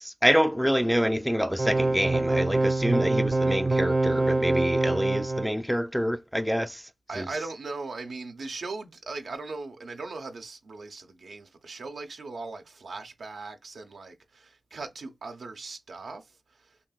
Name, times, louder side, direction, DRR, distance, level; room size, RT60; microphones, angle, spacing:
voice 1, 0.0-6.9 7.2-7.3, equal, ahead, 0.4 m, -26 dB
sound 1, 1.6-5.5, right 2 dB, 35° right, 0.7 m, -25 dB
voice 2, 7.1-16.8, right 3 dB, 80° right, 0.8 m, -39 dB
5.2 x 2.9 x 2.3 m
cardioid pair, 55°, 0 cm